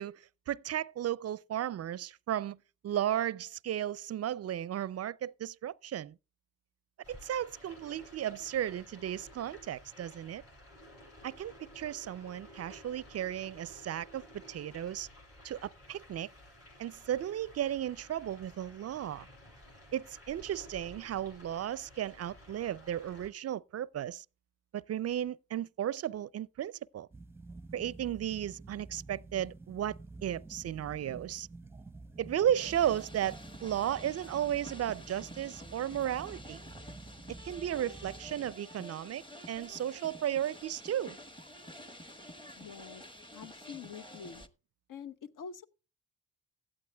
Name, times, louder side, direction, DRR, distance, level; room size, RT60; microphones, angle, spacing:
voice 1, 0.0-2.6 2.8-6.1 7.1-10.4 11.2-15.1 15.4-16.3 16.8-19.3 19.9-24.2 24.7-27.1 27.7-31.5 32.2-36.6 37.3-41.2, right 11 dB, 50° right, 0.4 m, -35 dB
sound 1, 7.0-23.3, left 1 dB, 45° left, 7.9 m, -54 dB
sound 2, 27.1-38.6, right 3 dB, 5° right, 0.7 m, -50 dB
sound 3, 32.6-44.5, left 1 dB, 15° left, 1.3 m, -50 dB
voice 2, 42.5-43.0 43.3-44.4 44.9-45.7, left 6 dB, 70° left, 0.9 m, -46 dB
16.0 x 12.0 x 2.3 m
cardioid pair, 70°, 33 cm